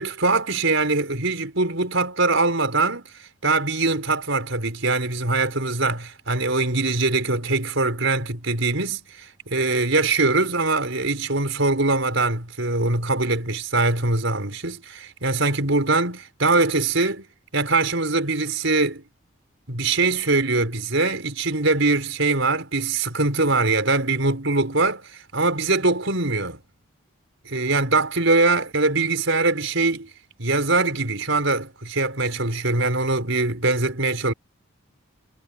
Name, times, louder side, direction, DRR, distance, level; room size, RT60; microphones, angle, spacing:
voice 1, 0.0-17.2 17.5-19.0 19.7-26.6 27.4-30.1 30.4-34.3, right 3 dB, 65° right, 4.7 m, -22 dB
head